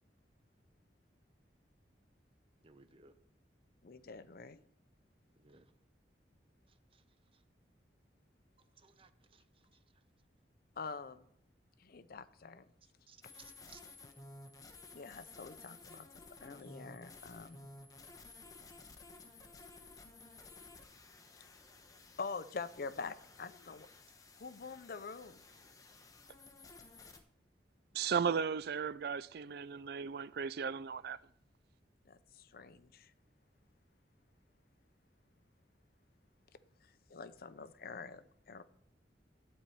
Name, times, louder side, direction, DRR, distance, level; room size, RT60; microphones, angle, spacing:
voice 1, 2.6-3.1 5.4-5.7 8.8-9.4 13.1-13.8, right 5 dB, 30° right, 0.7 m, -60 dB
voice 2, 3.8-4.6 10.8-11.2 11.8-12.6 14.9-16.1 16.4-17.7 22.2-23.9 24.4-25.4 32.1-33.1 37.1-38.6, left 4 dB, 60° left, 0.6 m, -45 dB
sound 1, 13.2-27.2, left 3 dB, 20° left, 1.0 m, -55 dB
voice 3, 27.9-31.2, right 6 dB, 60° right, 0.4 m, -35 dB
12.0 x 4.4 x 8.3 m
head